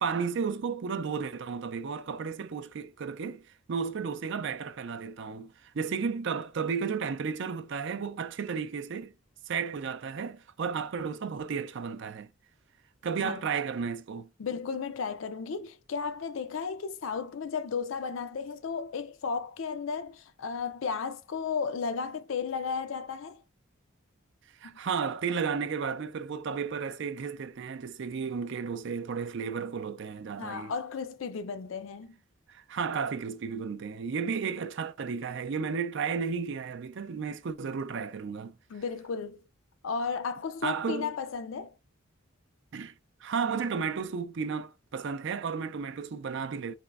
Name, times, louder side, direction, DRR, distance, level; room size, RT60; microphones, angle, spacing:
voice 1, 0.0-9.1 9.5-12.3 13.0-14.3 24.6-30.7 32.5-38.6 40.6-41.1 42.7-42.9 43.2-46.8, right 6 dB, 60° right, 0.4 m, -33 dB
voice 2, 14.4-23.4 30.4-32.2 38.7-39.4 39.8-41.7, left 5 dB, 70° left, 0.4 m, -34 dB
4.3 x 3.0 x 2.3 m
head